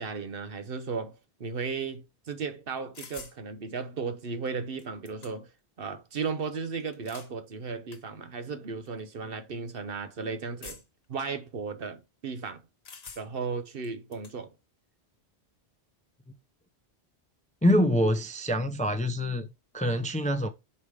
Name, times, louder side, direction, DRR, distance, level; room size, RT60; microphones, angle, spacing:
voice 1, 0.0-5.5 5.8-10.8 11.1-12.6 13.2-14.5, right 5 dB, 55° right, 1.0 m, -35 dB
sound 1, 2.9-3.4 4.5-4.6 4.8-5.6 6.8-7.3 7.9-8.0 8.8-9.0 10.6-11.0 12.8-13.5 13.8-14.4, left 5 dB, 65° left, 1.4 m, -46 dB
voice 2, 17.6-19.5 19.7-20.5, equal, 10° left, 0.5 m, -25 dB
5.5 x 5.0 x 4.8 m
omnidirectional pair, 1.1 m